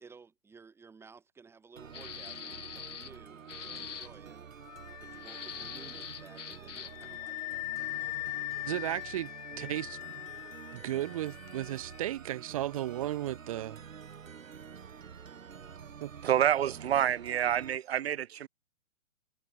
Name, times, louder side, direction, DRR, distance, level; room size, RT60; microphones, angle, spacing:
voice 1, 0.0-4.4 5.0-7.9, right 5 dB, 5° right, 6.7 m, -55 dB
sound 1, 1.8-17.8, right 7 dB, 80° right, 5.3 m, -48 dB
sound 2, 1.9-3.2 3.5-4.1 5.2-7.1, left 8 dB, 65° left, 5.8 m, -43 dB
Wind instrument woodwind instrument, 4.6-12.1, left 21 dB, 25° left, 2.7 m, -41 dB
voice 2, 8.6-9.3 9.6-10.2 10.7-13.8 16.0-16.1, right 14 dB, 25° right, 1.0 m, -35 dB
voice 3, 16.2-18.5, right 10 dB, 50° right, 1.0 m, -28 dB
hypercardioid pair, 165°, 39 cm